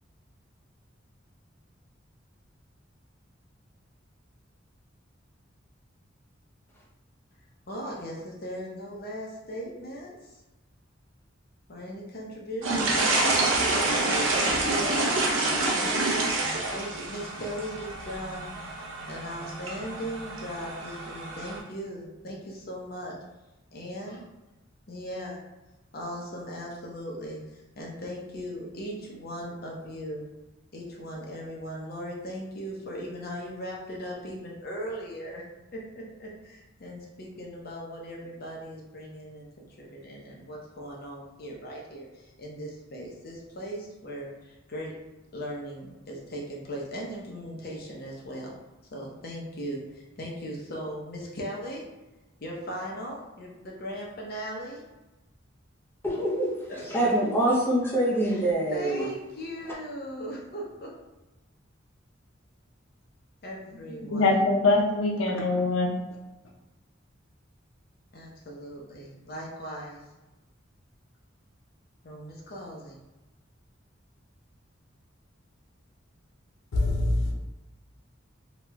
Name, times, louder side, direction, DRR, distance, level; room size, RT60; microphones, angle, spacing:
voice 1, 7.7-10.4 11.7-13.2 13.6-15.2 15.6-18.5 19.1-23.2 23.7-24.2 24.9-25.4 25.9-30.3 30.7-35.4 35.7-44.9 45.3-48.5 48.9-51.8 52.4-54.8 58.7-60.9 63.4-64.4 68.1-70.0 72.0-73.0, equal, 50° left, 0.8 m, -38 dB
sound 1, 12.6-21.6, right 2 dB, 85° right, 0.6 m, -27 dB
voice 2, 56.0-59.1, right 1 dB, 10° left, 0.6 m, -25 dB
voice 3, 64.1-65.9 76.7-77.3, left 2 dB, 85° left, 0.6 m, -23 dB
3.0 x 2.3 x 3.0 m
head